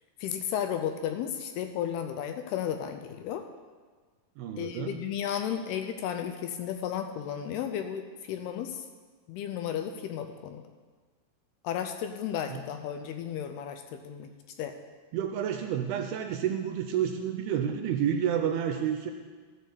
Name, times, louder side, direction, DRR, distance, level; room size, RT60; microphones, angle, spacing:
voice 1, 0.2-3.5 4.6-8.9 9.3-10.6 11.6-14.3 14.6-14.7, left 9 dB, 80° left, 6 dB, 2.4 m, -33 dB
voice 2, 4.4-5.0 12.5-12.6 15.1-19.1, right 9 dB, 80° right, 5 dB, 2.3 m, -30 dB
13.5 x 6.4 x 6.9 m, 1.5 s
omnidirectional pair, 4.9 m